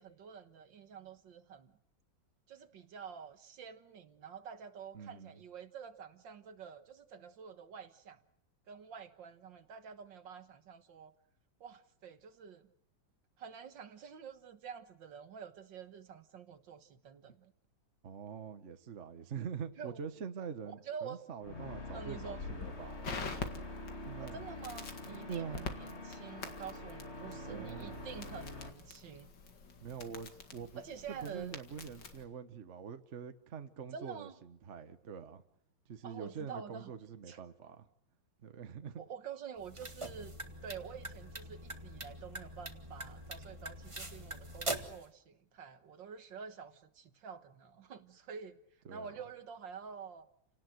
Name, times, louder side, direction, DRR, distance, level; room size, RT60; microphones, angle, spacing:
voice 1, 0.0-1.7 2.5-8.2 8.7-11.1 11.6-12.7 13.4-17.5 19.8-20.0 20.9-21.2 21.9-22.4 24.2-29.3 30.8-31.6 33.9-34.4 36.0-36.9 37.3-37.4 39.0-40.4 40.6-48.6 48.9-50.3, right 7 dB, 65° right, 10 dB, 2.0 m, -48 dB
voice 2, 4.9-5.4 18.0-23.0 24.0-24.4 25.3-25.7 27.5-28.1 29.8-30.8 31.1-35.4 35.9-37.8 38.4-39.0 48.8-49.1, right 7 dB, 40° right, 9 dB, 1.4 m, -44 dB
sound 1, 21.4-28.7, left 2 dB, 30° left, 2.8 m, -45 dB
Crackle, 22.4-32.2, left 4 dB, 60° left, 2.7 m, -46 dB
sound 2, 39.6-45.0, right 2 dB, 15° right, 1.6 m, -43 dB
29.5 x 18.5 x 8.0 m, 0.72 s
omnidirectional pair, 2.2 m